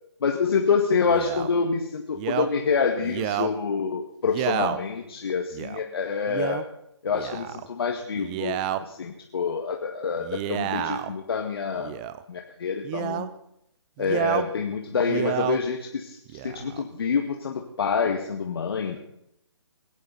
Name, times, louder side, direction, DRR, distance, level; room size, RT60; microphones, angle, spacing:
voice 1, 0.2-6.6 7.0-11.9 12.3-13.3 14.0-19.0, left 5 dB, 55° left, 2 dB, 1.9 m, -27 dB
Male speech man speaking, 1.1-1.5 2.2-2.5 3.0-3.5 4.3-4.8 5.5-5.8 6.3-6.6 7.1-7.7 8.2-8.8 10.2-11.1 11.8-12.2 12.8-13.3 14.0-14.5 14.9-15.6 16.3-16.8, right 12 dB, 15° right, 0.5 m, -30 dB
28.0 x 12.0 x 4.1 m, 0.77 s
hypercardioid pair, 155°, 15 cm